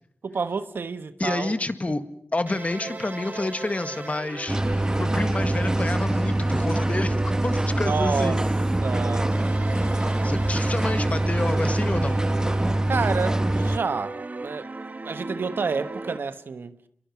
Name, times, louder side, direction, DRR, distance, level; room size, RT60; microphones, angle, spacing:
voice 1, 0.2-1.5 7.8-8.4 8.8-9.4 12.9-14.2 14.4-14.7 15.0-16.8, right 4 dB, 85° right, 1.2 m, -29 dB
voice 2, 1.2-2.0 2.3-8.4 10.0-12.2, left 2 dB, 40° left, 1.8 m, -29 dB
sound 1, 2.5-16.2, right 3 dB, 50° right, 1.4 m, -36 dB
sound 2, 4.5-13.8, right 1 dB, 20° right, 1.3 m, -24 dB
27.5 x 22.5 x 7.2 m
cardioid pair, 50°, 4 cm